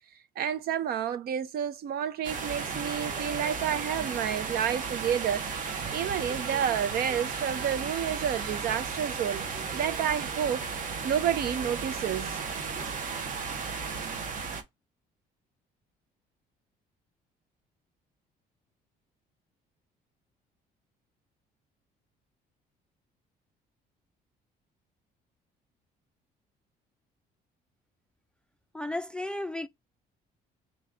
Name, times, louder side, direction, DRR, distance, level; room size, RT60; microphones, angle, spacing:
voice 1, 0.4-5.5 5.8-9.5 9.7-10.6 11.0-12.4, right 9 dB, 65° right, 0.8 m, -30 dB
sound 1, 2.2-14.6, right 5 dB, 50° right, 1.2 m, -34 dB
Wind instrument woodwind instrument, 5.5-8.8, right 6 dB, 25° right, 0.9 m, -52 dB
voice 2, 28.7-29.7, left 1 dB, 5° left, 0.4 m, -33 dB
3.8 x 3.1 x 3.6 m
cardioid pair, 110°, 17 cm